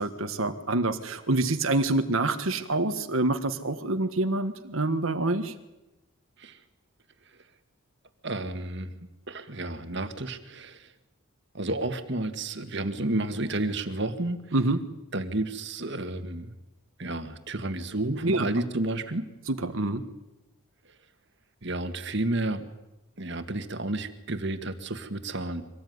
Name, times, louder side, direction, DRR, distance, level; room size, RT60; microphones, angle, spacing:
voice 1, 0.0-5.5 14.5-14.8 18.2-18.5 19.5-20.0, right 2 dB, 70° right, 7 dB, 1.5 m, -26 dB
voice 2, 8.2-8.9 9.3-10.9 11.5-14.5 15.1-16.5 17.0-19.3 21.6-22.7 23.2-25.6, right 2 dB, 55° right, 8 dB, 2.0 m, -31 dB
25.0 x 19.0 x 9.6 m, 0.99 s
head